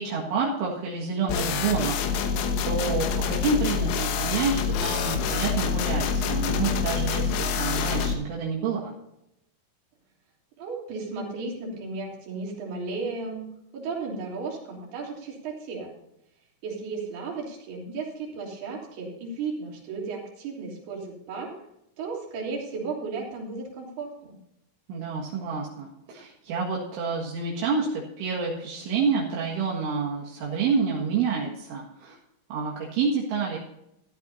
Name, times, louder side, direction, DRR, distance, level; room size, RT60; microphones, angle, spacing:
voice 1, 0.0-2.4 2.6-8.9 24.9-32.2 32.5-33.6, right 5 dB, 75° right, -4 dB, 4.2 m, -28 dB
sound 1, 1.3-8.1, left 6 dB, 85° left, 3.8 m, -26 dB
voice 2, 10.6-13.5 13.7-15.9 16.6-21.5 22.0-24.4, right 4 dB, 55° right, -2 dB, 5.0 m, -34 dB
15.0 x 13.0 x 2.7 m, 0.82 s
omnidirectional pair, 5.7 m